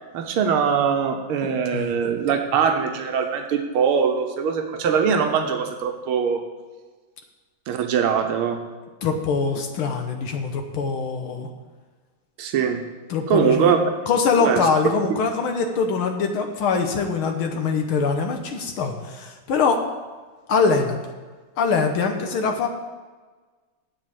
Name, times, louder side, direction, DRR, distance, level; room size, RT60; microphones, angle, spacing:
voice 1, 0.1-6.4 7.7-8.6 12.4-12.8 13.3-13.9 14.4-14.6, right 7 dB, 85° right, 5 dB, 1.8 m, -22 dB
voice 2, 1.4-1.9 9.0-11.5 13.1-13.8 14.1-19.8 20.5-21.0 21.6-22.7, left 5 dB, 80° left, 4 dB, 1.9 m, -23 dB
8.0 x 7.7 x 8.4 m, 1.4 s
omnidirectional pair, 2.3 m